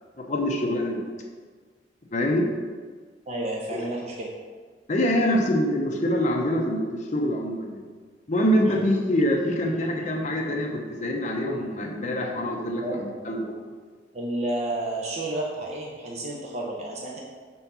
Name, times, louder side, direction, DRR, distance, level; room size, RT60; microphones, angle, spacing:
voice 1, 0.2-1.0 2.1-2.4 3.7-3.8 4.9-7.8 8.3-13.6, equal, 40° left, 0 dB, 0.8 m, -25 dB
voice 2, 3.3-4.3 8.6-8.8 12.8-13.0 14.1-17.2, right 1 dB, 40° right, -3 dB, 0.7 m, -31 dB
4.6 x 4.2 x 5.5 m, 1.5 s
head